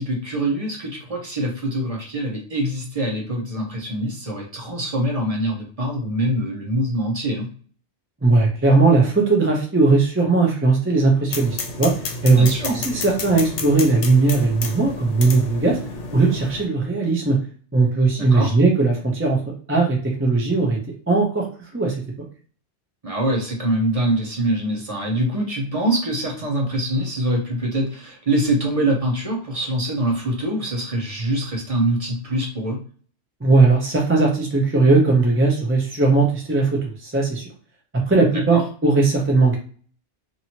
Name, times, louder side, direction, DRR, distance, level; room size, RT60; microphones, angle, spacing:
voice 1, 0.0-7.5 12.4-12.8 18.2-18.6 23.0-32.8 38.5-38.6, right 1 dB, 35° right, -1 dB, 0.8 m, -24 dB
voice 2, 8.2-11.9 12.2-15.8 16.1-17.4 17.7-19.4 19.7-20.8 21.1-21.5 21.7-21.9 33.4-37.4 38.1-39.6, right 3 dB, 15° right, -1 dB, 0.4 m, -18 dB
sound 1, 11.3-16.7, left 4 dB, 85° left, 0.9 m, -31 dB
2.8 x 2.7 x 2.8 m, 0.43 s
omnidirectional pair, 1.2 m